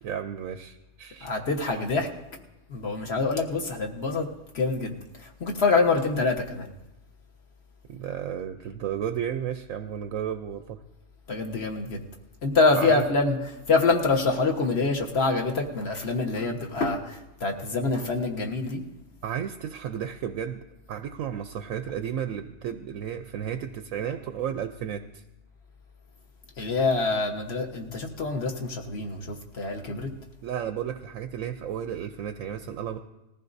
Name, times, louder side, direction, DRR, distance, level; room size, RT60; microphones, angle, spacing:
voice 1, 0.0-1.3 7.9-10.8 12.7-13.0 19.2-20.6 20.9-25.2 30.4-33.0, right 9 dB, 65° right, 8 dB, 0.9 m, -33 dB
voice 2, 1.2-2.1 2.7-4.3 4.5-4.9 5.2-6.7 11.3-12.0 12.4-13.4 13.7-18.8 26.6-30.1, left 3 dB, 45° left, 2 dB, 1.5 m, -25 dB
20.0 x 15.0 x 2.7 m, 0.99 s
omnidirectional pair, 1.7 m